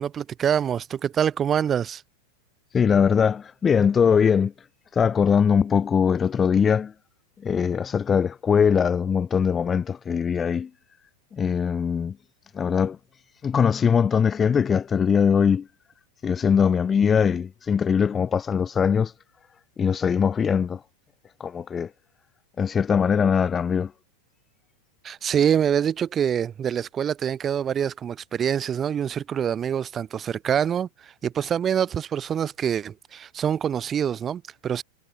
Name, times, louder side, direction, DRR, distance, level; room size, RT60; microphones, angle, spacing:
voice 1, 0.0-2.0 25.0-34.8, right 8 dB, 25° right, 2.5 m, -25 dB
voice 2, 2.7-4.5 4.9-6.9 7.4-10.7 11.3-12.2 12.5-13.0 13.4-15.7 16.2-19.1 19.8-20.8 21.4-21.9 22.6-23.9, left 7 dB, 20° left, 1.5 m, -21 dB
figure-of-eight pair, 90°, 0 cm